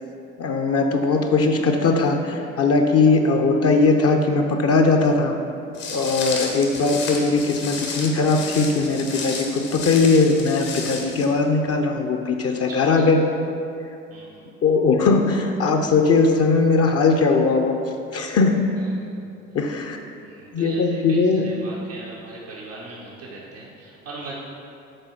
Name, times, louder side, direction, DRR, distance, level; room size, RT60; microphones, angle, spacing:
voice 1, 0.4-5.4 5.9-13.2 14.6-17.8 18.1-18.6 19.5-20.0 20.5-21.6, left 3 dB, 40° left, 4 dB, 0.7 m, -19 dB
Walk footsteps, 5.8-11.3, left 4 dB, 60° left, 1.2 m, -32 dB
voice 2, 6.5-6.8 12.7-12.8 14.1-14.5 18.8-19.1 20.2-24.3, right 2 dB, 85° right, -8 dB, 1.0 m, -40 dB
6.6 x 4.1 x 4.5 m, 2.6 s
hypercardioid pair, 50°, 37 cm